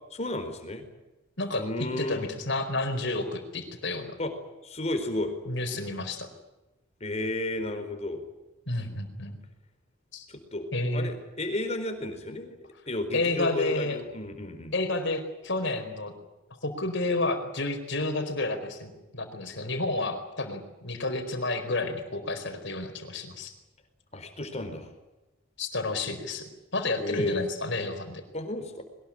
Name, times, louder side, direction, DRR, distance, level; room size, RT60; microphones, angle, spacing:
voice 1, 0.1-0.8 1.6-2.3 4.2-4.3 4.6-5.3 7.0-8.2 10.3-12.6 12.9-14.7 24.1-24.9 27.0-27.4 28.3-28.8, left 1 dB, 30° left, 7 dB, 4.5 m, -32 dB
voice 2, 1.4-4.2 5.5-6.3 8.7-9.4 10.1-10.3 10.7-11.1 13.1-14.0 14.7-16.1 16.6-23.5 25.6-28.2, left 2 dB, 60° left, 7 dB, 4.6 m, -30 dB
22.5 x 21.0 x 9.9 m, 1.0 s
head